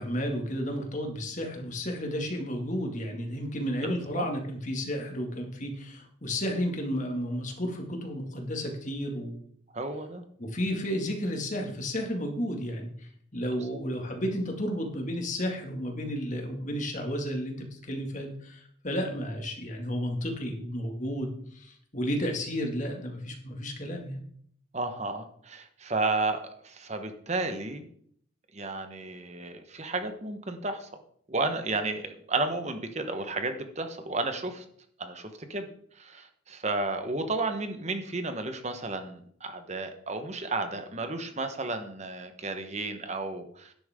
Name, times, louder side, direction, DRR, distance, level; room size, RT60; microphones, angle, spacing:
voice 1, 0.0-9.5 10.4-24.2, equal, 40° left, 2 dB, 2.2 m, -32 dB
voice 2, 3.8-4.3 9.7-10.2 24.7-27.8 28.5-30.9 31.3-34.6 35.0-35.7 36.0-43.7, right 3 dB, 35° right, 7 dB, 1.2 m, -32 dB
12.0 x 10.5 x 3.7 m, 0.62 s
head